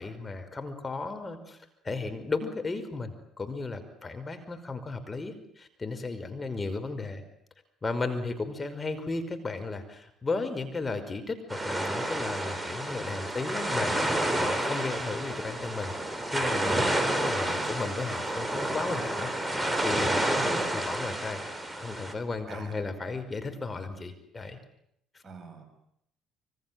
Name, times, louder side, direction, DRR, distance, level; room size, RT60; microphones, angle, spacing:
voice 1, 0.0-1.6 1.8-7.2 7.8-15.9 16.3-19.3 19.8-21.4 21.8-24.6 25.1-25.2, left 3 dB, 25° left, 7 dB, 5.3 m, -35 dB
sound 1, 11.5-22.1, right 1 dB, 10° right, 5.0 m, -30 dB
voice 2, 17.4-17.8 20.4-20.6 22.5-22.9 25.2-25.6, right 6 dB, 40° right, 8 dB, 7.1 m, -43 dB
27.0 x 24.5 x 7.7 m, 0.73 s
hypercardioid pair, 55°, 0 cm